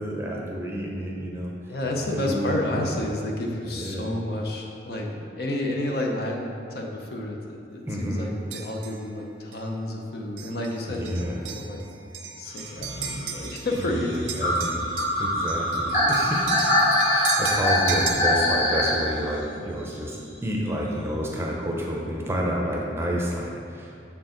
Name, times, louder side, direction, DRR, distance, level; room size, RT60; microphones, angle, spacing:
voice 1, 0.0-1.5 2.0-3.1 3.7-4.2 7.9-8.3 10.9-11.5 13.9-14.8 15.2-23.9, equal, 15° right, -2 dB, 0.6 m, -30 dB
voice 2, 1.7-5.1 5.4-11.8 12.3-14.5, left 1 dB, 55° left, 1 dB, 0.7 m, -30 dB
sound 1, 8.5-9.0 9.5-9.7 10.4-10.7 11.0-13.9 14.1-18.1, right 6 dB, 90° right, 0.7 m, -35 dB
sound 2, 12.6-19.1 20.3-20.4, left 1 dB, 40° left, 1.2 m, -23 dB
6.7 x 4.5 x 3.8 m, 2.4 s
head